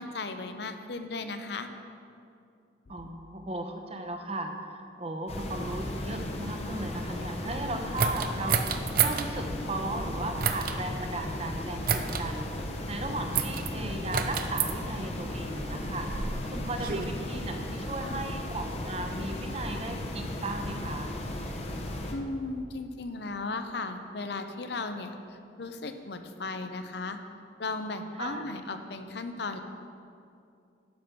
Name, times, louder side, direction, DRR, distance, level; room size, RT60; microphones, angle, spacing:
voice 1, 0.0-1.7 2.9-3.0 18.0-18.4 22.1-27.2 27.6-29.6, left 3 dB, 60° left, 8 dB, 0.7 m, -36 dB
voice 2, 2.9-8.6 9.0-12.5 12.9-21.1 28.2-28.5, right 2 dB, 30° right, 4 dB, 0.9 m, -36 dB
sound 1, 5.3-22.1, left 1 dB, 35° left, 0.9 m, -36 dB
sound 2, 8.0-9.3 10.4-10.8 11.8-12.2 13.3-13.7 14.1-14.7 15.6-17.1, right 7 dB, 50° right, 0.5 m, -29 dB
10.5 x 6.1 x 6.8 m, 2.5 s
head